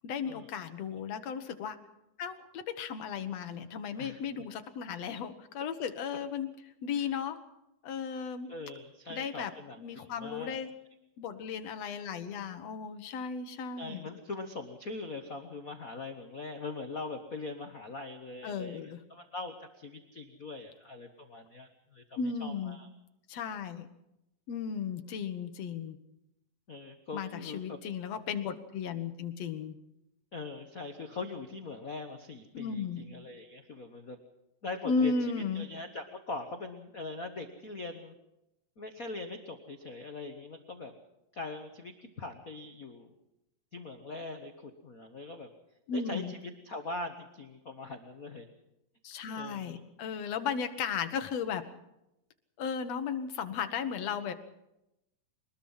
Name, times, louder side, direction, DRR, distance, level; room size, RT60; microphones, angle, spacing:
voice 1, 0.0-1.8 2.2-6.5 6.8-7.4 7.8-8.5 9.1-9.5 9.8-10.7 11.2-14.1 18.4-19.0 22.2-22.8 23.3-23.9 24.5-26.0 27.1-29.8 32.5-33.0 34.8-35.7 45.9-46.3 49.0-51.7 52.6-54.3, left 6 dB, 60° left, 8 dB, 2.1 m, -35 dB
voice 2, 8.1-10.6 13.8-22.9 26.7-27.8 30.3-34.2 34.6-35.1 35.5-38.1 38.8-40.9 41.3-43.1 43.7-45.5 45.9-46.4 46.6-48.5 49.3-49.8, left 3 dB, 85° left, 5 dB, 0.7 m, -42 dB
23.0 x 20.5 x 5.7 m, 0.87 s
omnidirectional pair, 3.9 m